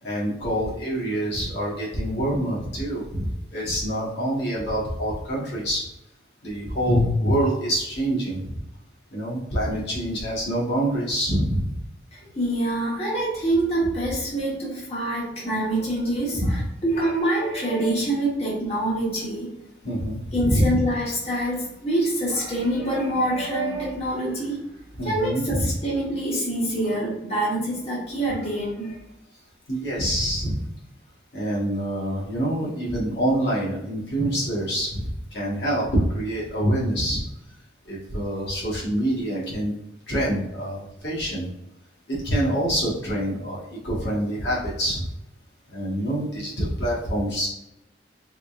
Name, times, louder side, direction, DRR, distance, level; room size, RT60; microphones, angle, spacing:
voice 1, 0.0-5.8 6.4-8.6 9.1-11.7 16.3-16.6 19.8-20.8 25.0-25.7 29.7-30.7 31.3-37.2 37.8-39.7 40.1-41.5 42.1-45.1 45.7-47.5, equal, 75° left, -5 dB, 1.4 m, -26 dB
voice 2, 12.1-19.5 20.3-24.6 25.0-29.0, right 1 dB, 35° left, -5 dB, 1.1 m, -25 dB
3.7 x 3.7 x 2.4 m, 0.84 s
head